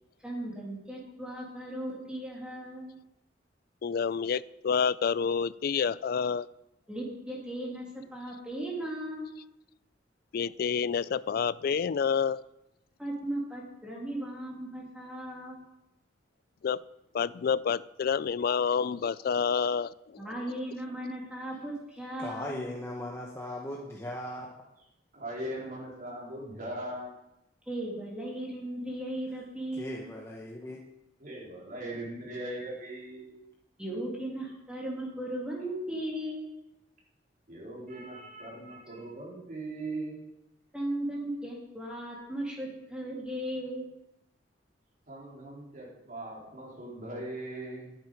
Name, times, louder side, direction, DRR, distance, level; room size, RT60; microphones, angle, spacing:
voice 1, 0.2-2.9 6.9-7.8 8.1-9.3 13.0-15.6 20.2-22.6 27.7-30.0 33.8-36.4 40.7-43.8, right 1 dB, 5° right, -4 dB, 3.1 m, -36 dB
voice 2, 3.8-6.5 10.3-12.4 16.6-16.8 17.1-20.2, left 6 dB, 55° left, 19 dB, 0.3 m, -28 dB
voice 3, 22.2-24.5 29.7-30.8, left 1 dB, 15° left, -2 dB, 1.1 m, -38 dB
voice 4, 25.1-27.1 31.2-33.4 37.5-40.2 45.1-48.0, right 1 dB, 50° right, -5 dB, 4.3 m, -39 dB
11.5 x 9.2 x 5.1 m, 0.88 s
head